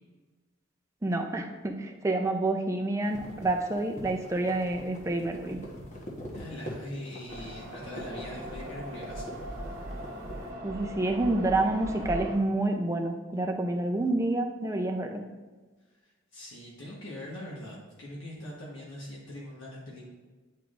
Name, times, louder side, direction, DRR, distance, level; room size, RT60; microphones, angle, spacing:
voice 1, 1.0-5.6 10.6-15.2, right 2 dB, 15° right, 3 dB, 0.5 m, -28 dB
sound 1, 3.0-10.4, equal, 35° left, 1.1 m, -44 dB
voice 2, 6.3-9.4 16.0-20.0, left 1 dB, 60° left, -5 dB, 1.2 m, -42 dB
sound 2, 7.3-12.4, right 1 dB, 45° right, 1.4 m, -39 dB
9.7 x 4.6 x 2.5 m, 1.3 s
head